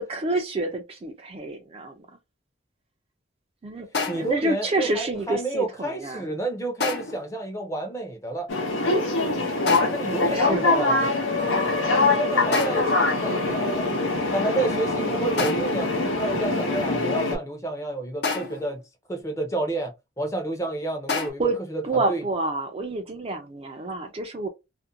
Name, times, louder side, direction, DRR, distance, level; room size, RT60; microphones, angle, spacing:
voice 1, 0.0-2.1 3.6-3.9 4.2-6.2 10.3-11.1 21.4-21.6 21.8-24.5, right 2 dB, 30° right, 0.4 m, -28 dB
sound 1, 3.9-4.5 6.8-7.3 9.7-10.2 12.5-13.0 15.4-15.9 18.2-18.7 21.1-21.3, left 4 dB, 60° left, 0.7 m, -29 dB
voice 2, 4.1-8.5 9.9-11.1 11.8-13.8 14.3-18.8 19.1-21.4 21.7-22.2, right 2 dB, 15° left, 0.6 m, -30 dB
sound 2, 8.5-17.4, left 3 dB, 90° left, 0.9 m, -23 dB
2.4 x 2.1 x 2.6 m
head